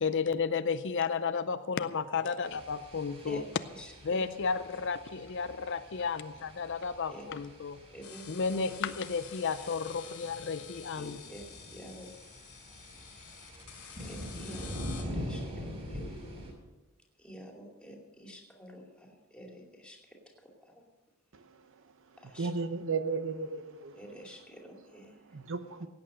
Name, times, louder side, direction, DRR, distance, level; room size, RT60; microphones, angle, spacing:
voice 1, 0.0-3.4 4.0-7.8 8.3-11.2, left 5 dB, 55° left, 12 dB, 0.5 m, -32 dB
sound 1, 2.4-16.5, equal, 30° right, 6.1 m, -44 dB
voice 2, 3.7-4.2 7.1-7.2 7.9-8.2 8.5-8.7 11.0-12.1 12.7-12.8 14.0-16.0 17.2-20.8 22.2-22.5 23.9-25.2, right 1 dB, 5° left, 1 dB, 2.5 m, -48 dB
sound 2, 8.0-15.0, left 8 dB, 80° left, 2.7 m, -49 dB
voice 3, 22.4-23.9 25.3-25.9, right 4 dB, 60° right, 10 dB, 0.8 m, -34 dB
17.0 x 8.9 x 6.6 m, 1.1 s
head